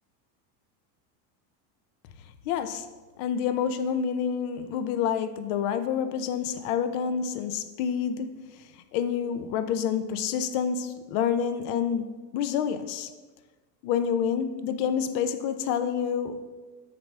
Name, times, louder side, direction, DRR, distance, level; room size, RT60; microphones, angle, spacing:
voice 1, 2.5-2.9 3.2-8.6 8.9-13.1 13.8-16.4, left 7 dB, 60° left, 11 dB, 0.7 m, -28 dB
7.9 x 5.7 x 3.3 m, 1.3 s
supercardioid pair, 115°, 48 cm